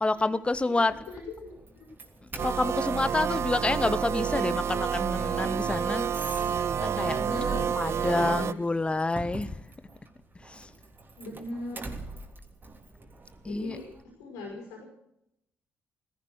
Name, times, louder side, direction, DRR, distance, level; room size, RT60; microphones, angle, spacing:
voice 1, 0.0-1.0 2.2-6.1 6.8-7.2 7.7-9.6 10.3-10.7 13.4-13.8, left 2 dB, 20° left, 0.8 m, -28 dB
Doorbell, 0.9-14.0, right 2 dB, 35° right, 3.4 m, -46 dB
voice 2, 1.1-1.9 7.0-7.8 8.1-8.6 11.2-11.9 13.4-13.9 14.2-14.8, left 1 dB, 85° left, 5.6 m, -39 dB
sound 1, 2.4-8.5, right 7 dB, 50° right, 0.5 m, -29 dB
16.0 x 14.5 x 6.4 m
hypercardioid pair, 50°, 6 cm